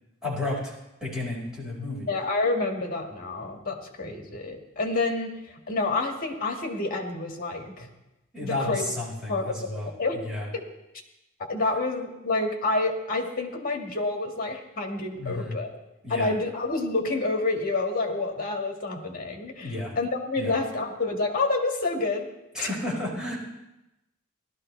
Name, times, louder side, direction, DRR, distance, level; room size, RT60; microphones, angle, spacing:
voice 1, 0.2-0.7 1.0-2.1 8.3-9.9 10.3-10.5 15.2-15.6 16.0-16.3 19.6-19.9 20.4-20.5 22.5-23.4, left 2 dB, 5° right, -6 dB, 4.9 m, -32 dB
voice 2, 2.1-5.3 5.7-7.9 8.4-8.8 9.3-10.2 10.5-10.7 11.5-15.8 16.1-22.3 22.6-22.7, left 3 dB, 40° left, 2 dB, 1.8 m, -28 dB
17.0 x 12.5 x 3.3 m, 0.93 s
head